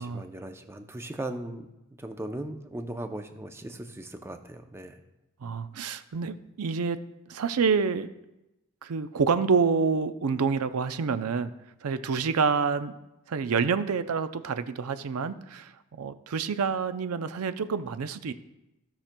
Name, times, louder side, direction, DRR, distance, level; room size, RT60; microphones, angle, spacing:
voice 1, 0.0-1.7 2.0-5.0, right 1 dB, 10° right, 6 dB, 0.5 m, -38 dB
voice 2, 5.4-7.0 7.3-8.1 8.8-11.5 11.8-13.0 13.3-18.3, right 5 dB, 80° right, 12 dB, 0.5 m, -27 dB
16.0 x 5.8 x 2.2 m, 0.95 s
head